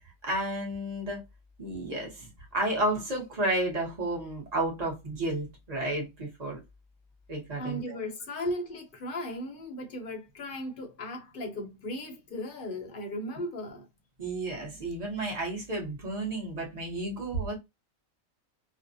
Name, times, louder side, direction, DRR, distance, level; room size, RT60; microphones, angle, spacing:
voice 1, 0.2-1.2 1.6-2.3 2.5-6.6 7.3-8.0 14.2-17.5, right 1 dB, 35° right, 0.8 m, -32 dB
voice 2, 7.6-13.9, left 1 dB, 50° left, 0.7 m, -36 dB
2.5 x 2.0 x 2.5 m
omnidirectional pair, 1.4 m